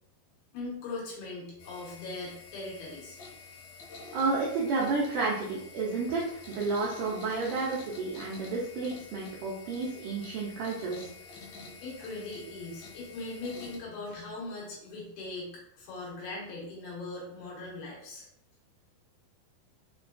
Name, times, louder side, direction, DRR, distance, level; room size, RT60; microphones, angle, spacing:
voice 1, 0.5-3.2 11.8-18.3, left 2 dB, 90° left, -4 dB, 3.2 m, -40 dB
sound 1, 1.6-13.8, left 4 dB, 75° left, 1.9 m, -48 dB
voice 2, 4.1-11.1, right 3 dB, 80° right, -4 dB, 1.8 m, -31 dB
6.2 x 2.3 x 2.5 m, 0.74 s
omnidirectional pair, 4.2 m